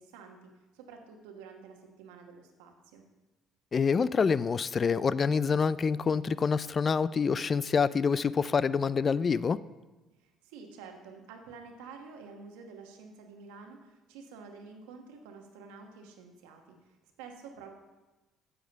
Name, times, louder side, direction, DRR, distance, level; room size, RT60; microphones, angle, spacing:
voice 1, 0.0-3.0 10.2-17.8, right 5 dB, 85° right, 3 dB, 1.2 m, -49 dB
voice 2, 3.7-9.6, left 5 dB, 40° left, 18 dB, 0.3 m, -26 dB
7.9 x 7.4 x 5.2 m, 1.1 s
hypercardioid pair, 60°, 0 cm